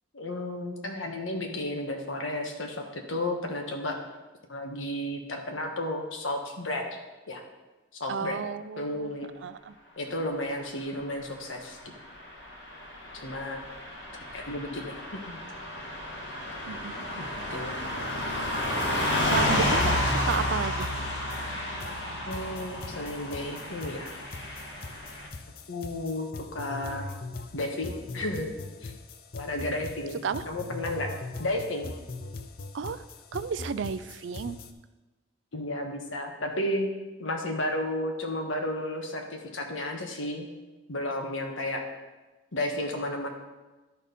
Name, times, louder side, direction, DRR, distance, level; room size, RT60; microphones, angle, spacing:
voice 1, 0.1-4.0 4.5-6.9 7.3-7.4 8.0-8.4 8.8-9.3 10.0-11.8 13.1-13.6 14.3-15.4 17.2-17.7 22.3-24.1 25.7-27.0 27.5-28.5 28.8-28.9 29.3-30.2 30.4-31.1 31.4-31.9 35.5-36.9 37.2-40.5 40.9-41.8 42.5-43.3, left 1 dB, 90° left, 2 dB, 1.3 m, -33 dB
voice 2, 8.1-9.1 9.4-9.7 16.7-17.3 19.2-20.9 30.2-30.4 32.7-33.0 33.3-34.6, right 6 dB, 70° right, 15 dB, 0.4 m, -33 dB
Car passing by / Truck, 12.3-25.3, left 1 dB, 70° left, 1.6 m, -31 dB
sound 1, 18.5-18.6 18.8-34.7, left 3 dB, 50° left, 0.6 m, -42 dB
12.0 x 4.3 x 5.3 m, 1.2 s
head